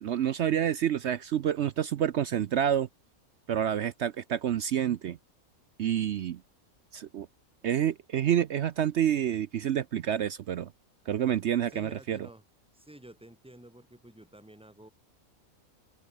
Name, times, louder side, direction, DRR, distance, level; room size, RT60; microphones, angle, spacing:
voice 1, 0.0-2.9 3.5-5.2 5.8-6.4 6.9-7.3 7.6-10.7 11.1-12.2, right 10 dB, 60° right, 0.8 m, -28 dB
voice 2, 11.7-12.4 12.7-14.9, right 1 dB, 5° right, 2.3 m, -51 dB
open air
omnidirectional pair, 1.5 m